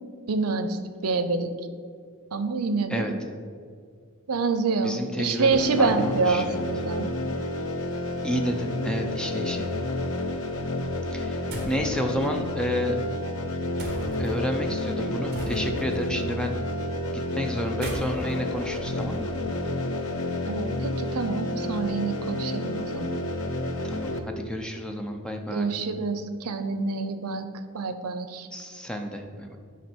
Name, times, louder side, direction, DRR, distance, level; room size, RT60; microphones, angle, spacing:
voice 1, 0.3-1.5 2.3-3.1 4.3-7.1 20.5-23.2 25.5-27.5 27.7-28.5, right 4 dB, 90° right, 10 dB, 0.6 m, -27 dB
voice 2, 4.8-6.6 8.2-9.7 11.1-13.0 14.2-16.5 17.1-19.3 23.8-25.7 28.5-29.6, equal, 5° left, 3 dB, 0.6 m, -31 dB
sound 1, 5.5-24.2, left 1 dB, 65° left, 0.7 m, -30 dB
sound 2, 11.5-11.9 13.8-14.3 15.3-15.9 17.6-19.6, right 1 dB, 45° right, 1.5 m, -36 dB
9.4 x 5.2 x 4.4 m, 2.1 s
head